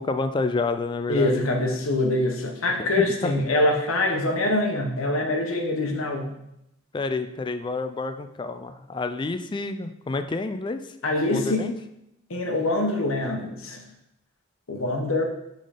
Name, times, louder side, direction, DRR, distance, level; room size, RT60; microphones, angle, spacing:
voice 1, 0.0-1.6 2.8-3.3 6.9-10.9 11.3-11.7, left 3 dB, 25° left, 9 dB, 0.3 m, -29 dB
voice 2, 1.1-6.3 11.0-11.6 12.3-13.8 14.7-15.2, left 2 dB, 90° left, 3 dB, 1.0 m, -24 dB
5.4 x 3.8 x 5.0 m, 0.84 s
head